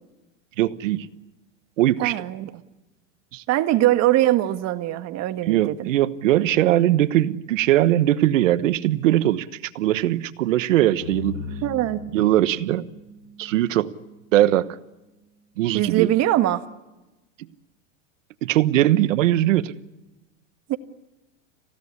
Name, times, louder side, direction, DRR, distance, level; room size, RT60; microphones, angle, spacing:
voice 1, 0.6-1.1 1.8-2.2 3.3-3.4 5.5-11.4 12.1-12.9 13.4-13.9 14.3-14.8 15.6-16.1 18.4-19.7, right 13 dB, 85° right, 14 dB, 1.2 m, -20 dB
voice 2, 2.0-2.5 3.5-5.9 11.6-12.0 15.7-16.6 20.7-20.8, right 14 dB, 45° right, 9 dB, 1.7 m, -22 dB
sound 1, 11.0-15.4, left 4 dB, 60° left, 5.7 m, -39 dB
27.5 x 17.0 x 9.6 m, 1.1 s
supercardioid pair, 120°, 38 cm